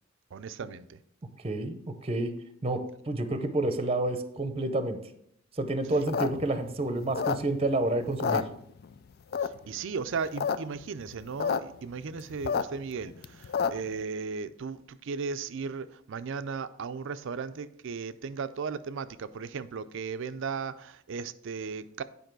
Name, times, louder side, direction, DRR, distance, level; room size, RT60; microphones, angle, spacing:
voice 1, 0.3-1.0 9.7-22.0, right 5 dB, 65° right, 0.4 m, -36 dB
voice 2, 1.4-2.3 2.6-5.0 5.6-8.5, right 2 dB, 30° right, 0.7 m, -29 dB
sound 1, 5.9-7.8 8.1-9.0 9.3-9.8 10.2-10.6 10.8-10.9 11.1-11.6 11.9-13.9, left 6 dB, 50° left, 0.4 m, -29 dB
9.0 x 5.2 x 4.6 m
head